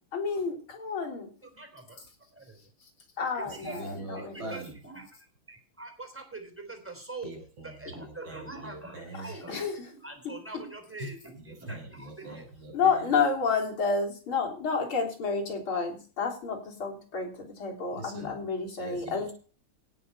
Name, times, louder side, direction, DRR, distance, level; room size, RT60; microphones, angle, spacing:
voice 1, 0.1-1.3 3.2-4.6 9.5-9.7 12.7-19.3, left 5 dB, 80° left, -1 dB, 4.4 m, -30 dB
voice 2, 1.5-2.0 2.3-2.6 3.3-3.9 4.1-5.1 5.5-7.3 7.6-12.4, right 3 dB, 5° right, 5 dB, 3.4 m, -44 dB
voice 3, 3.4-4.8 7.2-9.4 11.0-11.1 11.3-13.1 17.9-18.3 18.8-19.3, right 2 dB, 70° right, 1 dB, 6.0 m, -43 dB
17.5 x 6.6 x 5.6 m, 0.39 s
omnidirectional pair, 2.3 m